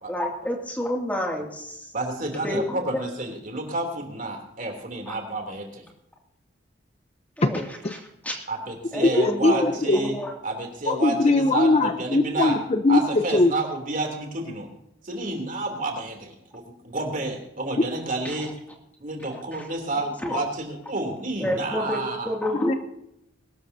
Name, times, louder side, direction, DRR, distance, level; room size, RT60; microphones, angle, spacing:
voice 1, 0.1-1.9 2.4-2.6 5.1-5.2 7.4-8.0 8.2-8.4 8.9-10.3 18.2-18.3 19.5-19.6 20.2-20.4 21.4-22.8, left 1 dB, 10° left, 0 dB, 2.4 m, -29 dB
voice 2, 1.9-5.8 8.5-10.1 10.4-12.6 12.9-14.7 15.0-18.5 19.0-22.4, right 2 dB, 45° right, 3 dB, 3.1 m, -30 dB
voice 3, 9.0-10.0 10.9-13.5 22.7-22.8, left 2 dB, 35° left, 9 dB, 0.7 m, -21 dB
22.5 x 13.0 x 2.8 m, 0.81 s
head